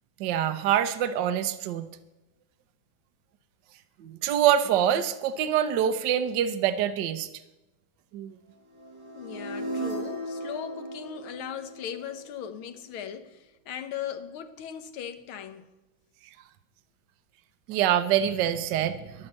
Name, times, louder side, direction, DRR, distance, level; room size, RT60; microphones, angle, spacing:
voice 1, 0.2-1.9 4.0-7.3 8.1-8.3 17.7-19.3, right 10 dB, 70° right, 1.3 m, -25 dB
sound 1, 8.7-12.8, right 2 dB, 45° right, 4.2 m, -37 dB
voice 2, 9.1-15.7, left 8 dB, 85° left, 1.8 m, -38 dB
11.0 x 9.7 x 7.9 m
omnidirectional pair, 2.2 m